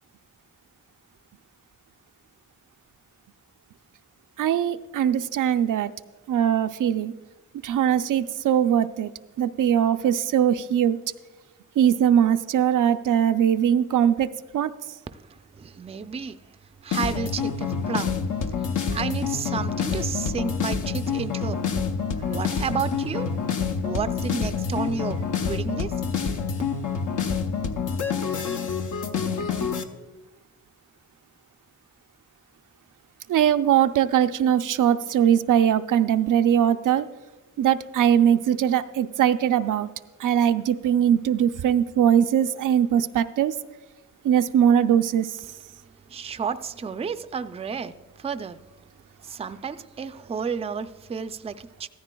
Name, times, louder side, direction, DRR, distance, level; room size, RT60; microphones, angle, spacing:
voice 1, 4.4-5.9 6.3-7.1 7.6-9.1 9.4-11.0 11.8-14.3 14.5-14.7 33.3-37.1 37.6-39.9 40.2-43.5 44.2-45.3, right 9 dB, 75° right, 0.5 m, -21 dB
voice 2, 15.1-16.4 16.8-21.7 22.1-26.0 46.1-48.6 49.2-51.9, right 5 dB, 20° right, 0.3 m, -32 dB
sound 1, 16.9-29.8, left 6 dB, 75° left, 0.7 m, -27 dB
15.0 x 13.5 x 2.3 m
wide cardioid pair, 100°, 32 cm